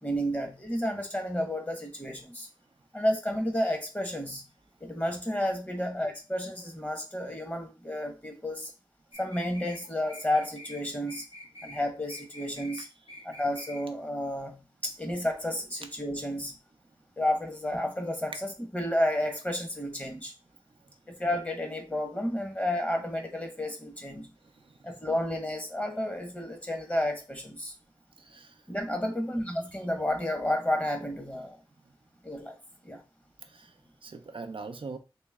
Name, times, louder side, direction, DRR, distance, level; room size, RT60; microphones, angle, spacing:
voice 1, 0.0-2.5 2.9-4.4 4.8-8.7 9.2-11.2 11.6-12.9 13.2-16.5 17.2-20.3 21.1-24.3 24.8-27.7 28.7-31.6 32.2-32.6 32.8-33.0, left 1 dB, 20° left, 1.2 m, -31 dB
sound 1, 9.1-9.8 10.1-10.8 11.1-11.8 12.1-12.8 13.1-13.8, left 1 dB, 85° left, 1.0 m, -46 dB
voice 2, 28.2-28.6 33.4-33.7 34.0-35.0, right 4 dB, 75° right, 0.5 m, -42 dB
3.1 x 3.0 x 3.5 m
wide cardioid pair, 45°, 9 cm